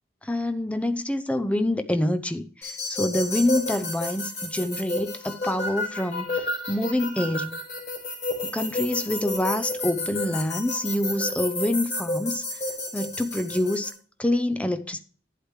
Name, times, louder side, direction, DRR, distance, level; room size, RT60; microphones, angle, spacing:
voice 1, 0.2-7.6 8.4-12.4 12.9-13.9 14.2-15.0, left 1 dB, 5° left, 0.6 m, -26 dB
sound 1, 2.6-13.9, left 2 dB, 40° left, 5.2 m, -31 dB
11.5 x 9.2 x 3.3 m
head